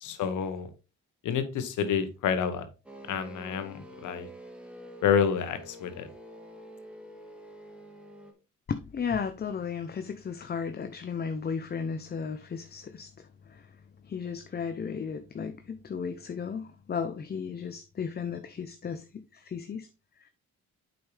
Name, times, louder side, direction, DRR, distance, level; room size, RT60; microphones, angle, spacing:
voice 1, 0.0-0.7 1.2-2.7 3.1-4.3 5.0-6.1, left 7 dB, 80° left, 1.2 m, -28 dB
sound 1, 2.9-8.3, right 1 dB, 5° right, 1.7 m, -47 dB
voice 2, 8.7-13.7 14.0-19.9 20.2-20.3, left 6 dB, 30° left, 0.7 m, -35 dB
7.8 x 5.4 x 3.4 m
cardioid pair, 90°, 30 cm